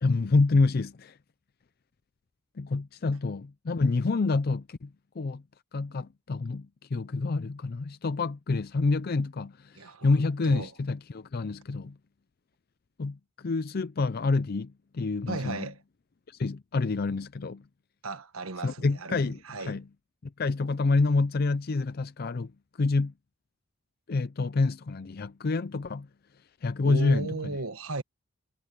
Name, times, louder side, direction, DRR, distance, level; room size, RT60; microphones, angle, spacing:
voice 1, 0.0-1.2 2.6-4.9 5.2-5.4 5.7-11.9 13.0-15.7 16.3-17.6 18.6-19.8 20.4-22.5 22.8-23.1 24.1-26.1 26.6-27.5, left 3 dB, 45° left, 0.5 m, -27 dB
voice 2, 9.7-10.7 15.3-15.8 18.0-19.8 26.8-28.0, right 3 dB, 85° right, 1.4 m, -36 dB
head